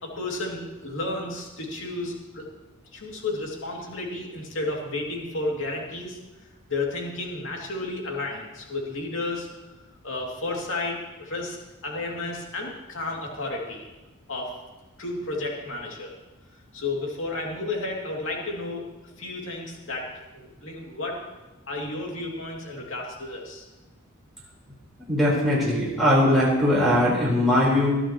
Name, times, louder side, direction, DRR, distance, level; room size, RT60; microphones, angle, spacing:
voice 1, 0.0-2.5 2.9-6.2 6.7-9.5 10.0-11.6 11.8-13.8 14.3-14.5 15.0-16.1 16.7-18.8 19.2-20.1 20.3-21.2 21.7-23.6, left 2 dB, 70° left, -1 dB, 2.7 m, -32 dB
voice 2, 25.1-27.9, left 1 dB, ahead, -9 dB, 4.3 m, -20 dB
20.0 x 12.5 x 3.1 m, 1.1 s
head